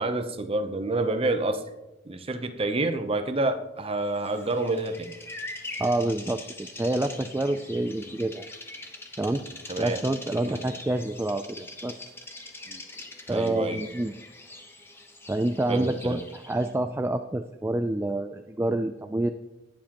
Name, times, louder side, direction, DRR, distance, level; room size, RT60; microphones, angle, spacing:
voice 1, 0.0-1.6 2.1-5.1 8.1-8.2 9.7-10.0 10.4-10.6 12.7-12.8 13.3-13.8 15.7-16.2, right 2 dB, 30° right, 9 dB, 0.7 m, -28 dB
Bird vocalization bird call bird song, 4.0-16.7, left 2 dB, 15° left, 1.0 m, -43 dB
voice 2, 5.8-6.4 6.8-8.5 9.2-9.4 9.8-12.1 13.3-14.1 15.3-19.3, right 1 dB, 10° right, 7 dB, 0.3 m, -27 dB
19.0 x 7.3 x 2.9 m, 0.99 s
head